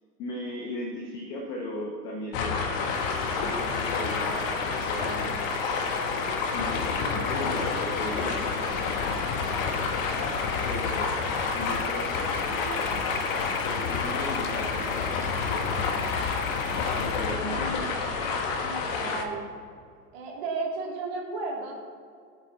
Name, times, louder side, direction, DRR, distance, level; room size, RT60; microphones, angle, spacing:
voice 1, 0.2-5.9 6.5-9.6 10.1-13.0 13.6-16.2 16.9-17.9, left 1 dB, 10° left, 1 dB, 0.4 m, -38 dB
sound 1, 2.3-19.2, left 4 dB, 35° left, 1.4 m, -29 dB
sound 2, 2.7-19.0, left 7 dB, 60° left, 1.1 m, -39 dB
voice 2, 8.2-8.6 17.5-18.0 18.6-19.5 20.1-21.8, right 3 dB, 40° right, -1 dB, 3.0 m, -34 dB
18.5 x 8.1 x 4.1 m, 2.3 s
figure-of-eight pair, 105°, 48 cm